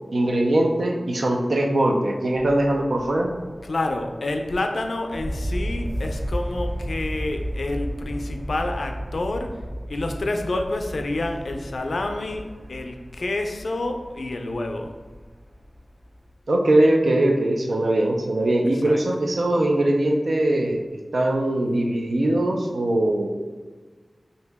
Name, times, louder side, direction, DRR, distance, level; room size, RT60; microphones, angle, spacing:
voice 1, 0.1-3.3 16.5-20.8 21.1-23.3, right 1 dB, 85° right, 2 dB, 0.4 m, -21 dB
sound 1, 2.3-16.3, equal, 35° right, 0.5 m, -34 dB
voice 2, 3.6-9.6 9.9-15.0 18.7-19.0, left 2 dB, 85° left, 5 dB, 0.3 m, -28 dB
2.8 x 2.7 x 3.4 m, 1.4 s
wide cardioid pair, 45°, 0 cm